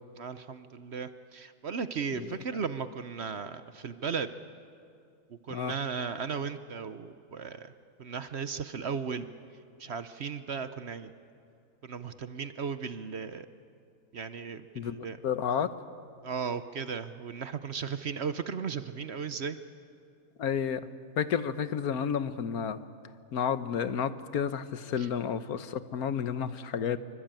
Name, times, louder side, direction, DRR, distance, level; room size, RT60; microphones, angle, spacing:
voice 1, 0.2-4.3 5.3-7.7 8.0-9.3 9.8-11.1 11.8-13.5 14.1-15.2 16.2-19.6 25.0-25.1, right 6 dB, 50° right, 11 dB, 1.0 m, -36 dB
voice 2, 14.7-15.7 20.4-20.8 21.2-22.8 23.3-27.0, left 7 dB, 75° left, 12 dB, 1.5 m, -31 dB
26.0 x 24.5 x 9.0 m, 2.4 s
omnidirectional pair, 1.6 m